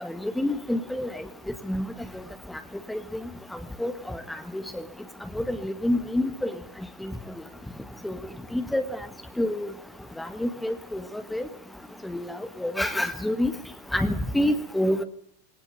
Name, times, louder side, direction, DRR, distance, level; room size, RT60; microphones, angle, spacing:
voice 1, 0.4-1.1 1.7-1.9 2.9-3.0 3.8-3.9 5.4-6.5 8.0-8.2 8.5-8.8 9.4-9.7 10.2-11.0 11.3-11.4 12.0-12.3 12.6-13.5 13.9-15.0, left 1 dB, 5° left, 9 dB, 1.7 m, -26 dB
22.5 x 18.5 x 8.5 m, 0.63 s
figure-of-eight pair, 90°, 0 cm